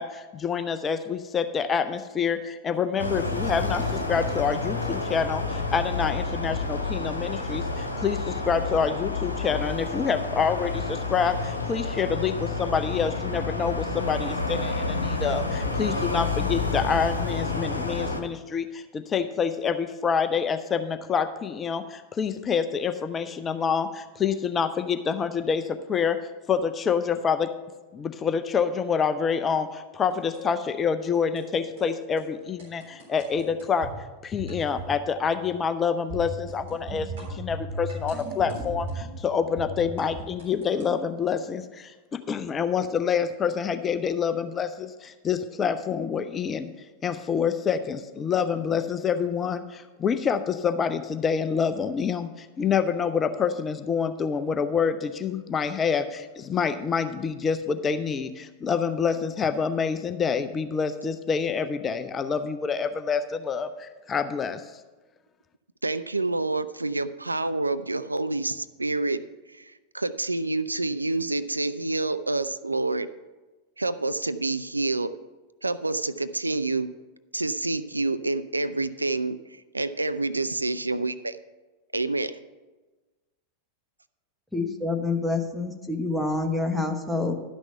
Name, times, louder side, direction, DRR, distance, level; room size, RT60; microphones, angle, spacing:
voice 1, 0.0-26.2 26.5-27.5 27.9-33.9 34.2-46.7 47.0-64.6, left 6 dB, 20° left, 10 dB, 0.5 m, -27 dB
sound 1, 3.0-18.2, left 3 dB, 85° left, 1.0 m, -29 dB
sound 2, 30.1-30.5 31.1-31.5 31.8-31.9 32.2-32.3 32.6-34.0 34.4-35.0 35.2-35.5 36.1-39.2 39.6-40.9, right 1 dB, 55° right, 3.7 m, -37 dB
voice 2, 65.8-69.2 69.5-73.1 73.8-75.1 75.6-76.9 77.3-81.4 81.9-82.3, right 2 dB, 80° right, 13 dB, 0.3 m, -28 dB
voice 3, 84.5-87.3, left 3 dB, ahead, 3 dB, 1.1 m, -27 dB
11.5 x 6.2 x 5.6 m, 1.2 s
figure-of-eight pair, 90°, 0 cm